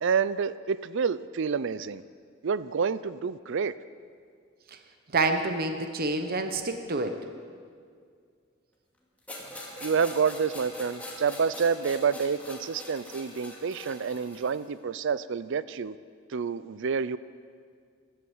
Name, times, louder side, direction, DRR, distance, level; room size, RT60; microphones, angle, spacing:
voice 1, 0.0-2.0 2.4-3.7 9.8-16.0 16.3-17.2, right 6 dB, 65° right, 17 dB, 0.5 m, -28 dB
voice 2, 5.1-7.2, right 3 dB, 50° right, 6 dB, 1.0 m, -27 dB
sound 1, 9.3-14.6, left 1 dB, 5° left, 2.4 m, -42 dB
15.5 x 11.5 x 7.2 m, 2.1 s
head